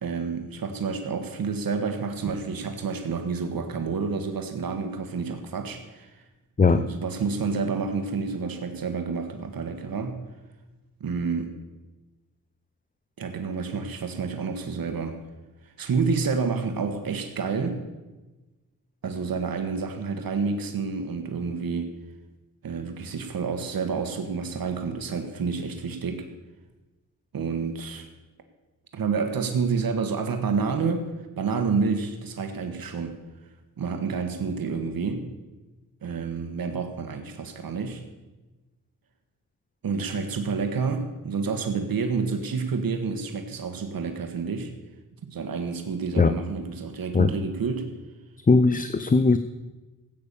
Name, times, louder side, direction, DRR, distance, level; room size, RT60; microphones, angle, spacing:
voice 1, 0.0-6.2 6.7-10.2 11.0-11.5 13.2-15.2 15.8-17.8 19.0-21.9 22.6-26.2 27.3-28.1 28.9-31.0 31.4-33.2 33.8-35.3 36.0-38.0 39.8-44.7 45.3-47.9, right 5 dB, 80° right, 6 dB, 1.4 m, -29 dB
voice 2, 48.5-49.4, left 4 dB, 25° left, 11 dB, 0.6 m, -19 dB
14.5 x 8.8 x 6.8 m, 1.2 s
wide cardioid pair, 110°, 35 cm